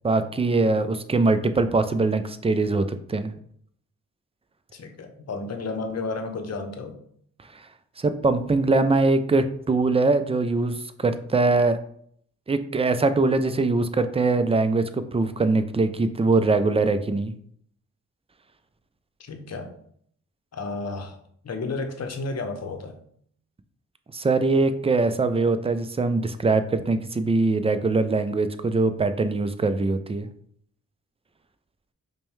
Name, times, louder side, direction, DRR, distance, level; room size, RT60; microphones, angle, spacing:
voice 1, 0.0-3.3 7.5-7.7 8.0-11.8 12.5-17.3 24.1-30.3, right 3 dB, 20° right, 10 dB, 0.4 m, -22 dB
voice 2, 4.7-7.0 19.2-19.7 20.5-21.2 21.4-23.0, left 3 dB, 50° left, 5 dB, 0.8 m, -32 dB
5.1 x 2.2 x 3.2 m, 0.65 s
supercardioid pair, 45°, 34 cm